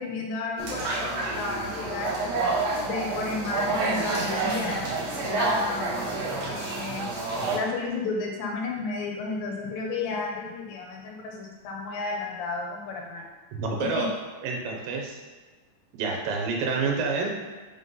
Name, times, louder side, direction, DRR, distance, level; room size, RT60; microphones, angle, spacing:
voice 1, 0.0-2.1 2.8-4.9 5.3-6.0 6.5-7.1 7.5-13.2 13.8-14.1, left 3 dB, 85° left, -1 dB, 2.8 m, -32 dB
sound 1, 0.6-7.6, right 3 dB, 55° right, 2.3 m, -29 dB
voice 2, 13.5-14.1 14.4-15.2 16.0-17.3, right 4 dB, 85° right, 1 dB, 2.6 m, -28 dB
6.1 x 3.8 x 5.4 m, 1.3 s
omnidirectional pair, 4.0 m